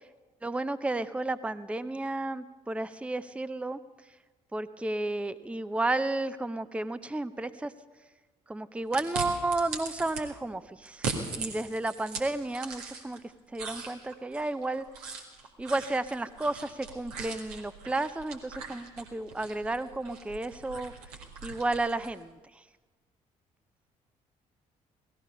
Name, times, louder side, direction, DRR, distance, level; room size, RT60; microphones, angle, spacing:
voice 1, 0.4-3.8 4.5-7.7 8.5-13.2 13.5-14.8 15.6-20.9 21.4-22.6, right 2 dB, 5° right, 14 dB, 0.6 m, -32 dB
sound 1, 8.9-10.2 10.9-13.2 13.5-22.2, right 4 dB, 75° right, 1.7 m, -40 dB
18.0 x 14.5 x 5.5 m, 1.3 s
figure-of-eight pair, 45°, 19 cm